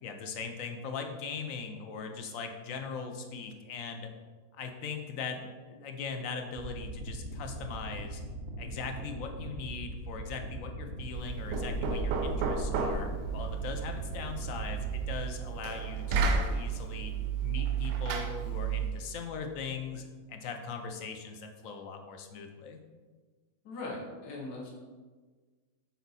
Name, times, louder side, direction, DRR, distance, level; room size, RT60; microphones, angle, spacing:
voice 1, 0.0-4.1 4.5-8.2 8.6-17.1 17.4-20.0 20.3-22.8, left 5 dB, 65° left, 5 dB, 0.9 m, -40 dB
sound 1, 6.5-15.3, right 1 dB, 65° right, 0.5 m, -41 dB
Knock, 11.1-19.0, right 5 dB, 80° right, 1.2 m, -32 dB
voice 2, 23.6-24.7, left 2 dB, 80° left, -3 dB, 1.7 m, -40 dB
6.2 x 4.0 x 4.0 m, 1.4 s
omnidirectional pair, 1.8 m